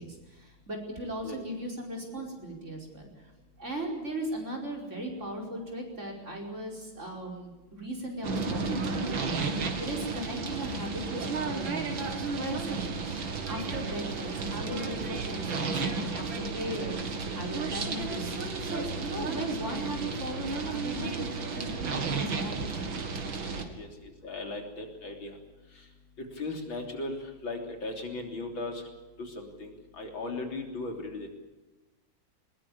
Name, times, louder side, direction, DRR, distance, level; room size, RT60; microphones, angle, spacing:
voice 1, 0.0-3.1 3.6-12.0 12.4-17.0 17.4-18.3 18.6-23.0 23.5-23.7, right 1 dB, 35° right, 1 dB, 5.2 m, -38 dB
sound 1, 8.2-23.6, right 4 dB, 70° right, 3.0 m, -33 dB
voice 2, 23.7-25.3 26.2-28.8 29.2-31.3, left 2 dB, 70° left, 3 dB, 4.1 m, -37 dB
21.5 x 20.5 x 8.7 m, 1.1 s
omnidirectional pair, 2.3 m